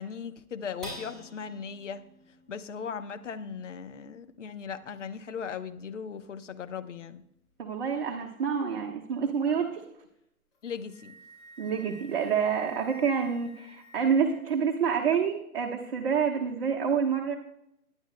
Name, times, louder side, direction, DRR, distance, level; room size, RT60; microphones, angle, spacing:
voice 1, 0.0-2.0 2.5-7.2 10.6-11.2, left 6 dB, 50° left, 10 dB, 1.0 m, -38 dB
sound 1, 0.8-7.5 8.0-8.1 8.5-9.0, equal, ahead, 5.2 m, -50 dB
voice 2, 7.6-9.8 11.6-17.4, right 6 dB, 40° right, 1 dB, 1.2 m, -28 dB
Wind instrument woodwind instrument, 10.5-14.5, right 5 dB, 25° left, 5.0 m, -49 dB
21.0 x 10.0 x 2.2 m, 0.79 s
figure-of-eight pair, 135°, 46 cm